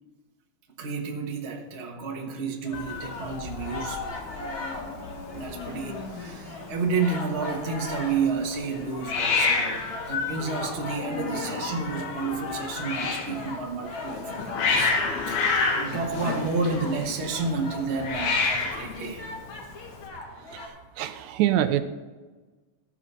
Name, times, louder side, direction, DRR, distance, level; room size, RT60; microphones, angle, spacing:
voice 1, 0.8-4.0 5.3-19.2, right 4 dB, 50° right, 1 dB, 0.7 m, -31 dB
sound 1, 2.6-20.7, left 2 dB, 45° left, 2.3 m, -40 dB
Hiss, 2.7-20.1, left 4 dB, 85° left, 2.9 m, -30 dB
voice 2, 21.0-21.8, right 12 dB, 85° right, 10 dB, 2.0 m, -24 dB
14.5 x 6.1 x 5.5 m, 1.3 s
omnidirectional pair, 3.4 m